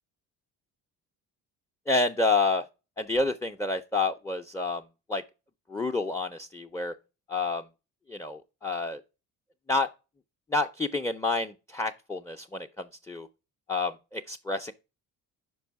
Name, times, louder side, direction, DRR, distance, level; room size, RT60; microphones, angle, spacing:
voice 1, 1.9-2.7 3.0-4.8 5.1-5.2 5.7-6.9 7.3-7.6 8.1-9.0 9.7-9.9 10.5-13.3 13.7-14.7, left 3 dB, 5° left, 0.5 m, -29 dB
5.4 x 5.0 x 4.7 m
supercardioid pair, 70°, 41 cm